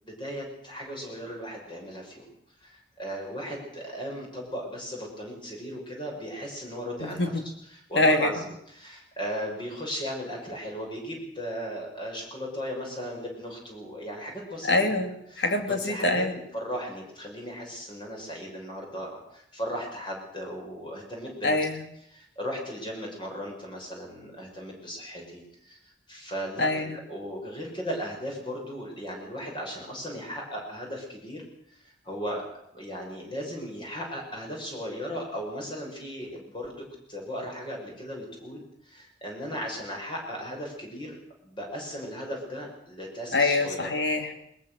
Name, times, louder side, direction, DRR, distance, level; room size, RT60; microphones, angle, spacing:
voice 1, 0.0-2.3 2.6-14.7 15.3-16.2 16.5-21.6 22.1-31.4 31.7-32.4 32.7-41.2 41.4-43.9, equal, 30° left, 0 dB, 6.7 m, -37 dB
voice 2, 7.0-7.4 7.9-8.3 14.6-15.1 15.4-16.3 21.4-21.8 26.6-27.0 43.3-44.3, left 2 dB, 70° left, 6 dB, 2.9 m, -24 dB
21.0 x 20.5 x 6.6 m, 0.73 s
head